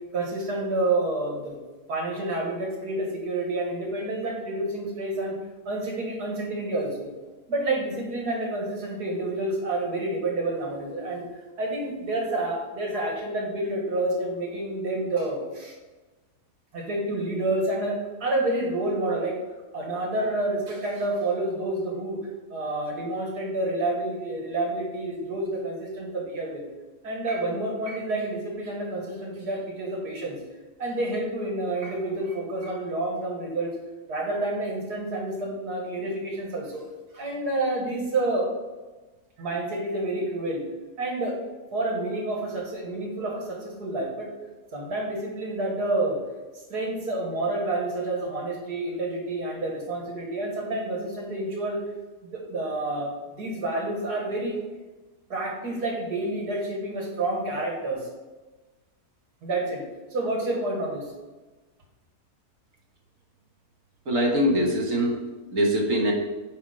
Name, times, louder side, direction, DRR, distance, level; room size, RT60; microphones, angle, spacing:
voice 1, 0.1-1.5 1.9-5.3 5.7-7.1 7.5-11.2 11.6-15.7 16.7-19.3 19.7-22.2 22.5-26.6 27.0-30.4 30.8-33.7 34.1-36.8 37.1-38.5 39.4-40.6 41.0-41.3 41.7-44.3 44.7-46.2 46.7-51.8 52.3-53.1 53.4-54.6 55.3-58.0 59.4-59.8 60.1-61.0, right 2 dB, 85° right, -1 dB, 2.2 m, -29 dB
voice 2, 64.1-65.2 65.5-66.1, equal, 55° right, -1 dB, 1.7 m, -22 dB
9.4 x 3.4 x 5.1 m, 1.2 s
omnidirectional pair, 1.6 m